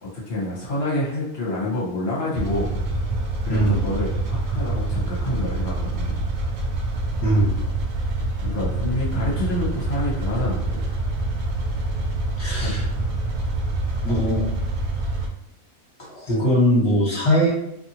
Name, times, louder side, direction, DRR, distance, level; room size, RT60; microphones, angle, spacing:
voice 1, 0.0-2.7 3.4-6.2 8.4-10.8 12.4-12.8, left 1 dB, 50° left, -5 dB, 1.1 m, -28 dB
sound 1, 2.3-15.3, right 2 dB, 80° right, 1.0 m, -26 dB
voice 2, 3.5-3.8 7.2-7.6 12.4-12.8 14.0-14.5 16.0-17.5, equal, 25° left, -6 dB, 1.3 m, -20 dB
2.6 x 2.6 x 2.8 m, 0.81 s
omnidirectional pair, 1.4 m